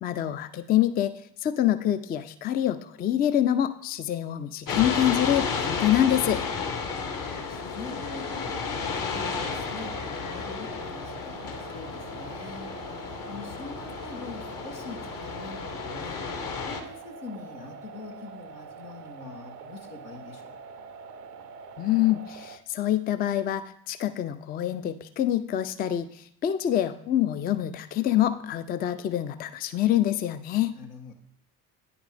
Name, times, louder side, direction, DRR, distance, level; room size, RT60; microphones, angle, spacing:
voice 1, 0.0-1.1 1.4-6.4 21.8-26.1 26.4-30.7, left 11 dB, 20° left, 12 dB, 0.4 m, -26 dB
sound 1, 4.7-16.8, left 5 dB, 45° left, 1.2 m, -33 dB
voice 2, 7.2-12.7 13.3-16.2 16.7-20.6 30.7-31.1, left 3 dB, 80° left, 2 dB, 1.2 m, -44 dB
sound 2, 7.8-22.6, right 5 dB, 85° right, 0.6 m, -44 dB
9.4 x 5.0 x 3.3 m, 0.68 s
figure-of-eight pair, 55°, 46 cm